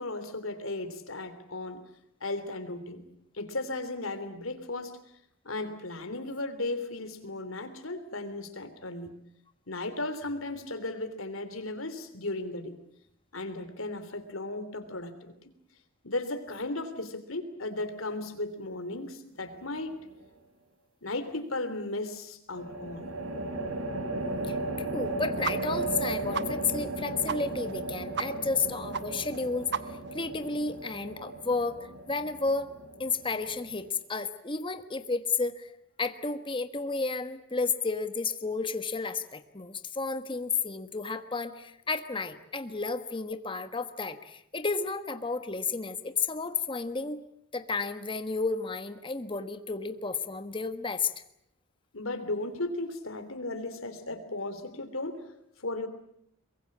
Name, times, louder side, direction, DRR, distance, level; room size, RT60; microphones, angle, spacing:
voice 1, 0.0-1.8 2.2-3.0 3.3-5.0 5.4-9.2 9.7-12.7 13.3-15.4 16.0-20.0 21.0-23.1 51.9-55.2 55.6-55.9, left 2 dB, 75° left, 10 dB, 3.1 m, -35 dB
sound 1, 19.4-20.0 22.5-33.9, right 2 dB, 85° right, 3.5 m, -35 dB
voice 2, 24.5-29.7 30.1-31.8 32.1-32.7 33.0-35.7 36.0-47.2 47.5-51.1, left 4 dB, 25° left, 9 dB, 1.3 m, -32 dB
sound 2, 25.4-25.6 25.9-26.0 26.3-26.5 26.8-26.9 27.3-27.4 27.7-27.8 28.1-28.3 28.6-28.7 28.9-29.0 29.3-29.4 29.7-30.1, right 6 dB, 55° right, 1.0 m, -32 dB
23.5 x 22.5 x 8.6 m, 0.75 s
head